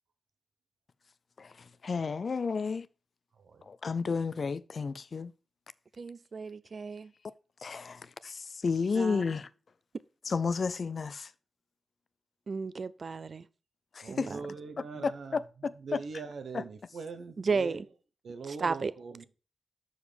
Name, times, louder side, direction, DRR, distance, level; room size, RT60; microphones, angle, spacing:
voice 1, 1.4-2.9 3.6-5.3 7.6-9.5 10.2-11.3 13.9-14.3 14.8-16.0 16.5-16.6, left 5 dB, 65° left, 0.4 m, -32 dB
voice 2, 6.0-7.1 9.0-9.2 12.5-13.4 14.1-14.4 17.4-17.8 18.5-18.9, right 4 dB, 60° right, 0.4 m, -33 dB
voice 3, 14.0-15.4 15.8-17.8 18.2-19.2, right 4 dB, 90° right, 0.9 m, -41 dB
6.4 x 5.1 x 5.0 m
cardioid pair, 65°, 0 cm